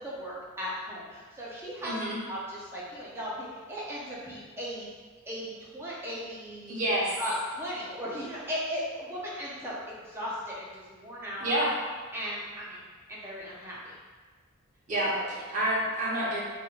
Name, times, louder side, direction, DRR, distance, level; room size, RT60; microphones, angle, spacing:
voice 1, 0.0-2.0 2.3-4.9 5.3-6.8 7.2-11.5 12.1-13.8 15.0-15.4, equal, 10° right, -7 dB, 0.7 m, -37 dB
voice 2, 1.8-2.2 6.7-7.1 11.4-11.7 14.9-15.1 15.5-16.4, right 1 dB, 35° right, -7 dB, 1.0 m, -28 dB
4.0 x 3.2 x 2.5 m, 1.5 s
head